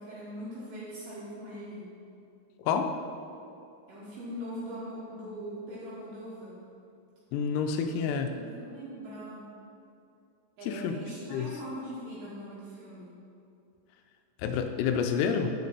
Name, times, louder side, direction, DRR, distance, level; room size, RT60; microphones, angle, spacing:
voice 1, 0.0-1.9 3.9-6.6 7.9-9.5 10.6-13.1, equal, 85° right, -9 dB, 2.0 m, -41 dB
voice 2, 7.3-8.3 10.7-10.9 11.3-11.5 14.4-15.5, left 6 dB, 85° left, 6 dB, 3.2 m, -28 dB
7.0 x 6.6 x 4.0 m, 2.6 s
omnidirectional pair, 5.9 m